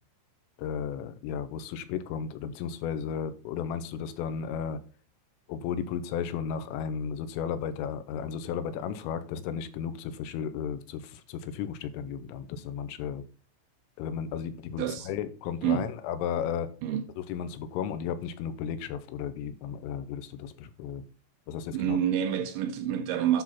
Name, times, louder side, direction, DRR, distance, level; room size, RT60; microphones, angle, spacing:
voice 1, 0.6-4.8 5.5-13.2 14.0-16.7 17.3-21.0 21.5-22.0, left 7 dB, 90° left, 3.4 m, -34 dB
voice 2, 14.8-15.1 15.6-15.9 16.8-17.1 21.7-23.4, right 10 dB, 80° right, 2.8 m, -28 dB
9.8 x 6.0 x 4.2 m
omnidirectional pair, 5.8 m